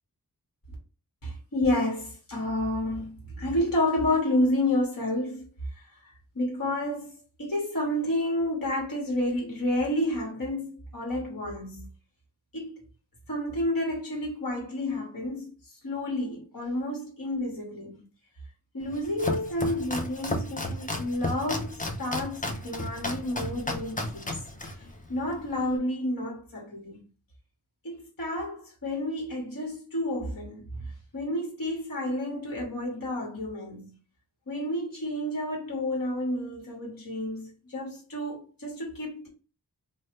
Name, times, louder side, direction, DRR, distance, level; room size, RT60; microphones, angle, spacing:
voice 1, 1.2-5.5 6.3-7.1 7.4-11.8 12.5-12.8 13.3-15.5 15.8-18.0 18.7-24.4 25.1-27.0 27.8-30.6 31.1-33.9 34.5-39.3, left 1 dB, 55° left, 1.2 m, -30 dB
Domestic sounds home sounds, 18.8-25.8, left 2 dB, 20° left, 0.5 m, -34 dB
3.0 x 2.2 x 3.0 m
wide cardioid pair, 45°, 40 cm